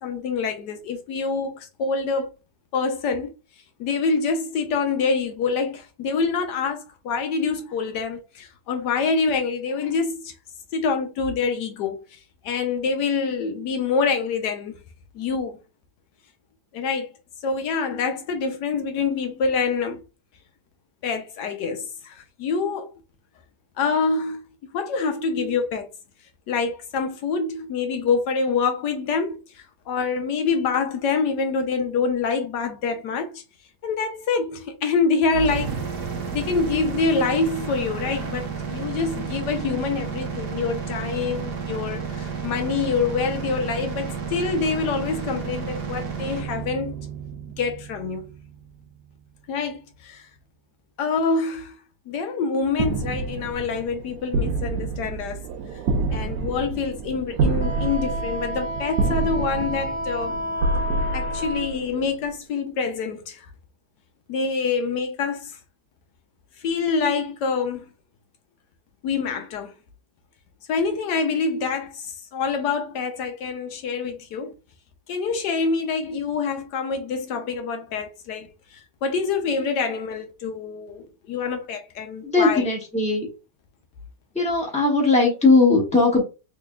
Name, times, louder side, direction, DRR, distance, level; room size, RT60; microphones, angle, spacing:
voice 1, 0.0-2.3 2.7-3.3 3.8-10.3 10.7-12.2 12.4-14.8 15.1-15.5 16.7-17.1 17.4-20.0 21.0-22.9 23.8-24.4 24.7-25.9 26.5-33.4 33.8-35.7 36.3-46.9 47.6-48.3 49.5-50.3 51.0-51.7 52.1-55.4 56.1-60.4 61.1-63.5 64.3-65.6 66.6-67.9 69.0-69.7 70.7-74.5 75.1-82.7, left 4 dB, 75° left, 1.2 m, -26 dB
sound 1, 35.3-49.2, right 6 dB, 55° right, 0.6 m, -32 dB
sound 2, 52.7-62.3, right 3 dB, 75° right, 1.2 m, -27 dB
Wind instrument woodwind instrument, 57.6-61.7, equal, 45° left, 0.8 m, -31 dB
voice 2, 82.2-83.3 84.3-86.2, left 3 dB, 5° left, 1.0 m, -19 dB
3.7 x 3.3 x 2.3 m
omnidirectional pair, 1.9 m